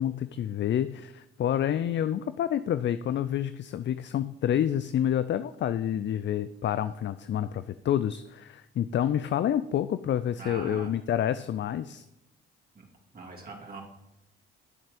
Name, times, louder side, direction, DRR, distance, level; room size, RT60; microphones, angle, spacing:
voice 1, 0.0-12.1, left 10 dB, 40° left, 14 dB, 0.5 m, -28 dB
voice 2, 10.4-10.9 12.7-12.9 13.1-13.8, right 3 dB, 30° right, -2 dB, 2.7 m, -42 dB
9.9 x 7.4 x 5.1 m, 0.88 s
hypercardioid pair, 50°, 29 cm